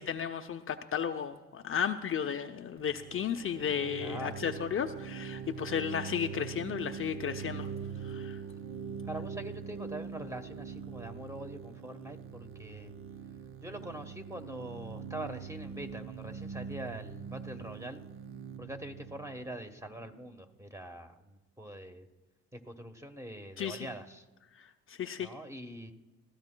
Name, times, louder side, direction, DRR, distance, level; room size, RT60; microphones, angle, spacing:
voice 1, 0.0-7.7 8.0-8.4 23.6-23.9 24.6-25.3, left 8 dB, 45° left, 6 dB, 0.6 m, -34 dB
sound 1, 2.8-20.4, right 6 dB, 45° right, 0.6 m, -43 dB
voice 2, 4.0-4.4 9.1-12.9 13.6-18.0 18.6-22.1 22.5-24.3 25.2-25.9, right 1 dB, 10° right, 6 dB, 1.1 m, -43 dB
24.0 x 15.0 x 2.2 m, 1.2 s
cardioid pair, 90°, 30 cm